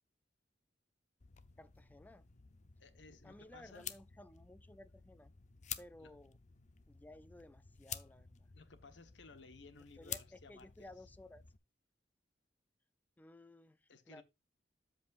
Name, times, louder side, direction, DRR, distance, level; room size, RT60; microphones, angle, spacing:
sound 1, 1.2-11.6, left 9 dB, 40° left, 0.7 m, -51 dB
voice 1, 1.6-2.2 3.2-5.3 5.8-6.4 6.9-8.5 10.0-11.4 13.2-14.2, left 1 dB, 10° left, 0.4 m, -57 dB
voice 2, 2.8-4.0 6.0-6.2 8.5-11.1 13.9-14.2, left 3 dB, 75° left, 1.1 m, -58 dB
13.0 x 5.2 x 2.5 m
head